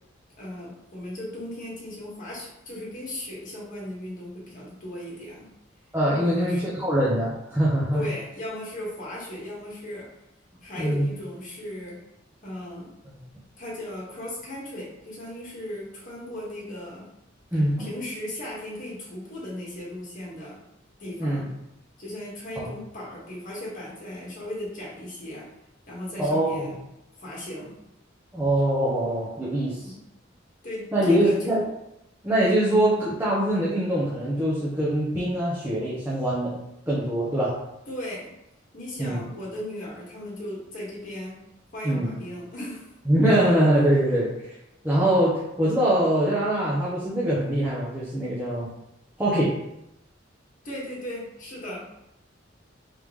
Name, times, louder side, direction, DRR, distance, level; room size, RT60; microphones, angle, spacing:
voice 1, 0.4-5.5 6.2-6.7 7.9-10.1 10.6-12.0 12.4-12.9 13.6-17.1 17.8-20.6 21.0-21.5 22.0-25.5 25.9-26.7 27.2-27.8 29.8-29.9 30.6-31.6 37.9-38.3 38.7-41.4 41.7-42.9 50.6-51.8, left 1 dB, 45° left, -6 dB, 1.5 m, -36 dB
voice 2, 5.9-8.1 10.8-11.1 13.1-13.2 17.5-17.9 21.2-21.5 22.6-22.7 26.2-26.7 28.3-29.9 30.9-31.6 32.2-36.6 36.9-37.6 39.0-39.2 41.8-42.1 43.1-44.5 44.8-48.7 49.2-49.5, right 1 dB, 10° right, -9 dB, 0.9 m, -23 dB
3.6 x 3.5 x 3.1 m, 0.86 s
head